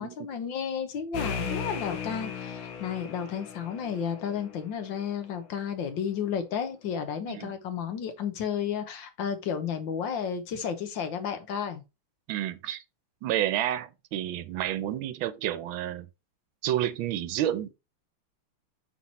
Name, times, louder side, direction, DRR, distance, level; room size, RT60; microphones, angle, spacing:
voice 1, 0.0-11.8, left 7 dB, 65° left, 1.6 m, -32 dB
sound 1, 1.1-4.6, left 6 dB, 90° left, 1.9 m, -36 dB
voice 2, 12.3-12.8 13.2-16.1 16.6-17.7, right 12 dB, 80° right, 1.4 m, -30 dB
5.8 x 4.7 x 4.0 m
omnidirectional pair, 2.2 m